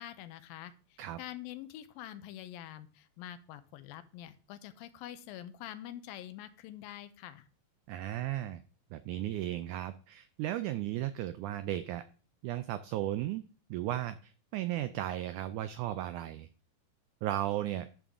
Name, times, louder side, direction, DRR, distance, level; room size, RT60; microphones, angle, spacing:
voice 1, 0.0-7.5, left 12 dB, 85° left, 12 dB, 2.6 m, -46 dB
voice 2, 7.9-8.6 8.9-12.0 12.4-13.4 13.7-16.5 17.2-17.9, right 13 dB, 90° right, 12 dB, 1.7 m, -35 dB
11.0 x 7.0 x 3.7 m, 0.40 s
omnidirectional pair, 4.1 m